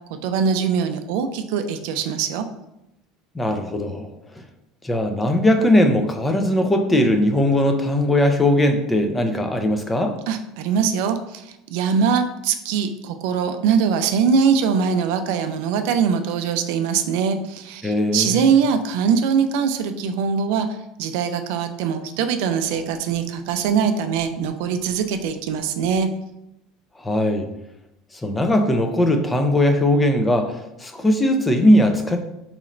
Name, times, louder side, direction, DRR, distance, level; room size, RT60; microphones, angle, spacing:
voice 1, 0.2-2.4 10.3-26.1, right 6 dB, 70° right, 8 dB, 0.3 m, -22 dB
voice 2, 3.3-4.1 4.8-10.1 17.8-18.5 27.0-27.5 28.2-32.2, left 1 dB, 10° left, 5 dB, 0.3 m, -19 dB
4.1 x 2.9 x 2.5 m, 0.87 s
cardioid pair, 160°, 0 cm